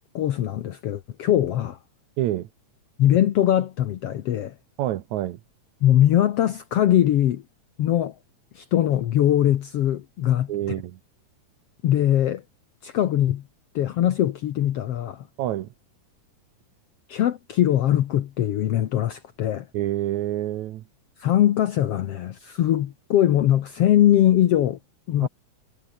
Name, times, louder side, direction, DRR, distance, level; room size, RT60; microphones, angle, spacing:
voice 1, 0.2-1.8 3.0-4.6 5.8-7.4 7.8-8.2 8.6-10.5 11.8-12.4 12.8-13.4 13.8-15.2 17.1-19.7 21.2-24.8 25.1-25.3, left 12 dB, 65° left, 1.9 m, -21 dB
voice 2, 2.2-2.5 4.8-5.4 10.5-11.0 15.4-15.7 19.7-20.8 25.2-25.3, right 13 dB, 75° right, 2.4 m, -27 dB
omnidirectional pair, 3.3 m